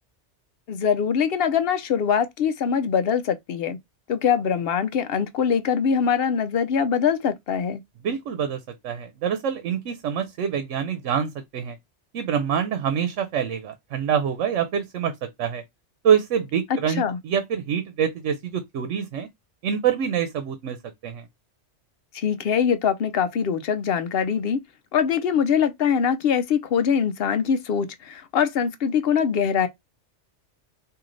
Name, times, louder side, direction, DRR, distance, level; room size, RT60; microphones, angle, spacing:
voice 1, 0.7-3.8 4.1-7.8 16.7-17.2 22.1-24.6 24.9-29.7, left 7 dB, 65° left, 0.7 m, -23 dB
voice 2, 8.0-11.8 12.1-15.6 16.0-19.3 19.6-20.8 21.0-21.3, right 8 dB, 85° right, 1.0 m, -25 dB
3.1 x 2.7 x 3.8 m
omnidirectional pair, 1.2 m